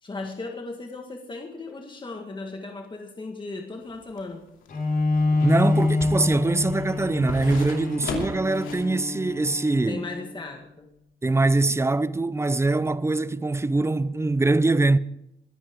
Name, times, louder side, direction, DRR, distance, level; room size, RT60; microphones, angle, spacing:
voice 1, 0.0-4.4 9.9-10.9, left 3 dB, 25° left, 1.7 m, -36 dB
sound 1, 3.8-8.9 9.3-9.4, left 4 dB, 75° left, 2.7 m, -38 dB
Bowed string instrument, 4.7-10.3, left 2 dB, 45° left, 5.1 m, -26 dB
voice 2, 5.4-10.0 11.2-15.0, right 2 dB, 15° right, 0.6 m, -23 dB
Gunshot gunfire, 7.4-8.6, right 7 dB, 85° right, 2.2 m, -46 dB
23.0 x 11.0 x 3.7 m
cardioid pair, 90°, 20 cm